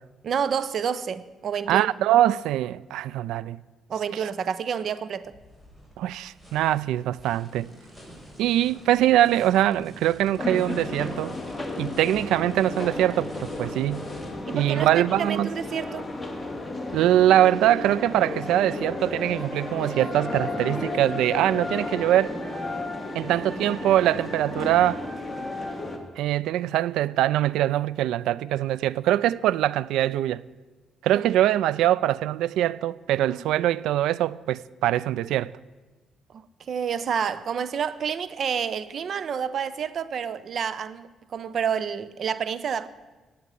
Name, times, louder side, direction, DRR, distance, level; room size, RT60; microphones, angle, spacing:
voice 1, 0.2-1.9 3.9-5.3 14.5-16.1 31.1-31.3 33.3-33.4 36.3-42.9, right 7 dB, 55° right, 0.8 m, -29 dB
voice 2, 1.7-3.6 4.1-4.3 6.0-7.7 8.4-11.4 11.8-14.0 14.5-15.5 16.9-22.4 23.1-25.0 26.2-30.4 31.0-35.5, right 13 dB, 90° right, 0.4 m, -23 dB
sound 1, 5.2-14.3, equal, 15° right, 5.3 m, -47 dB
sound 2, 10.4-26.0, left 2 dB, 10° left, 2.4 m, -33 dB
16.0 x 8.7 x 9.3 m
cardioid pair, 90°, 0 cm